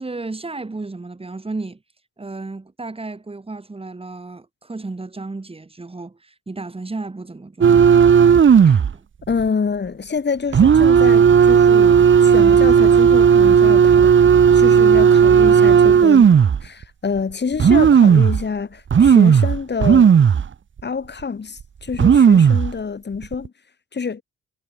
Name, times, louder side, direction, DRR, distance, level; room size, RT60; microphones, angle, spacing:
voice 1, 0.0-1.8 2.2-7.9 8.9-9.0, right 3 dB, 20° right, 4.4 m, -33 dB
sound 1, 7.6-8.9 9.3-9.4 10.5-16.6 17.2-17.3 17.6-18.4 18.9-20.5 20.8-20.9 21.6-21.7 21.9-22.7 23.2-23.5, right 7 dB, 40° right, 1.5 m, -12 dB
voice 2, 9.3-14.1 14.5-20.2 20.8-23.5 23.9-24.2, left 5 dB, 35° left, 4.8 m, -27 dB
cardioid pair, 90°, 30 cm